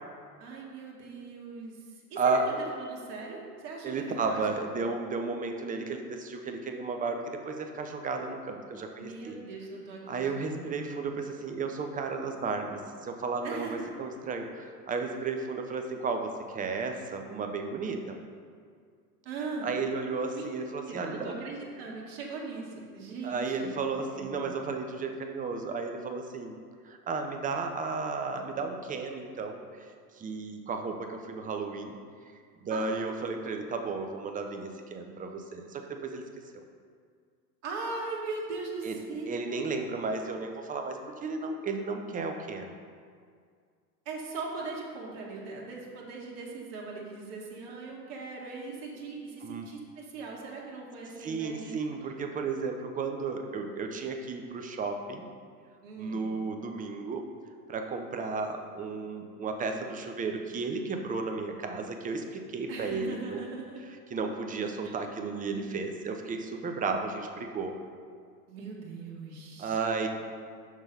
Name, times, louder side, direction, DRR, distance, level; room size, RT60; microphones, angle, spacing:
voice 1, 0.4-4.4 9.0-10.9 13.4-13.9 19.2-19.7 20.3-20.5 20.8-24.4 32.7-33.0 37.6-39.6 44.0-51.8 55.8-56.3 62.7-63.8 64.8-64.9 68.5-69.8, right 4 dB, 50° right, -3 dB, 1.7 m, -40 dB
voice 2, 2.2-2.5 3.8-9.4 10.1-18.2 19.6-21.3 23.2-26.5 26.8-29.9 30.1-32.0 32.6-36.2 38.8-39.0 39.3-42.7 49.4-49.7 51.2-55.3 56.0-57.3 57.7-63.4 64.1-67.8 69.6-70.1, right 4 dB, 15° right, 4 dB, 0.6 m, -33 dB
6.2 x 5.7 x 5.3 m, 2.1 s
hypercardioid pair, 95°, 49 cm